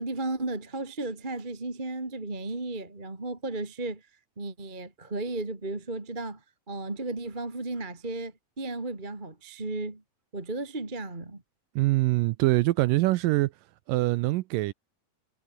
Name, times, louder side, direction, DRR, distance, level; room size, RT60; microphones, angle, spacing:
voice 1, 0.0-4.1 4.4-6.4 6.7-10.0 10.3-11.4, right 2 dB, 15° right, 2.3 m, -34 dB
voice 2, 11.8-13.5 13.9-14.7, right 19 dB, 80° right, 2.1 m, -24 dB
omnidirectional pair, 4.3 m